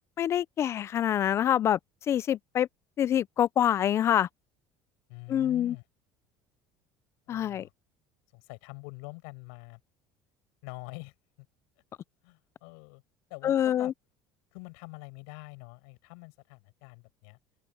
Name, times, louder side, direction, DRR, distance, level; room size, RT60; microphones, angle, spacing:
voice 1, 0.2-1.8 2.1-2.7 3.0-4.3 5.3-5.7 7.3-7.7 13.4-13.9, left 10 dB, 30° left, 0.3 m, -26 dB
voice 2, 5.1-5.8 7.3-7.7 8.3-9.8 10.6-11.5 12.2-13.0 13.3-13.9 14.5-17.4, left 35 dB, 85° left, 7.1 m, -45 dB
cardioid pair, 155°, 9 cm